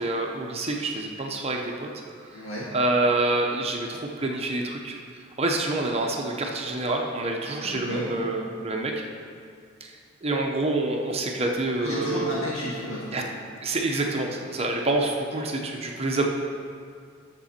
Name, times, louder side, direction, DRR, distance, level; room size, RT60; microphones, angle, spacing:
voice 1, 0.0-1.9 2.7-5.0 5.4-8.9 9.8-10.0 10.2-12.3 13.1-13.2 13.6-16.3, right 2 dB, 30° right, 1 dB, 0.7 m, -27 dB
voice 2, 2.3-2.7 7.6-8.1 11.8-13.3, equal, 70° left, -8 dB, 2.0 m, -32 dB
10.0 x 6.8 x 4.3 m, 2.2 s
head